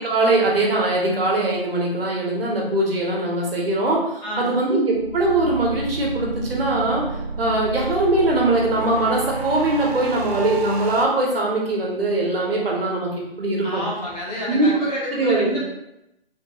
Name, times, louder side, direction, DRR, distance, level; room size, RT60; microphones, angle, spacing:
voice 1, 0.0-7.1 7.4-13.1 13.4-13.8 14.5-14.7 15.1-15.6, right 2 dB, 65° right, -2 dB, 1.1 m, -21 dB
voice 2, 4.2-4.6 13.6-15.7, equal, 40° left, -6 dB, 1.3 m, -28 dB
sound 1, 4.9-11.0, right 4 dB, 85° right, 0.6 m, -31 dB
3.5 x 3.0 x 2.3 m, 0.86 s
hypercardioid pair, 165°, 31 cm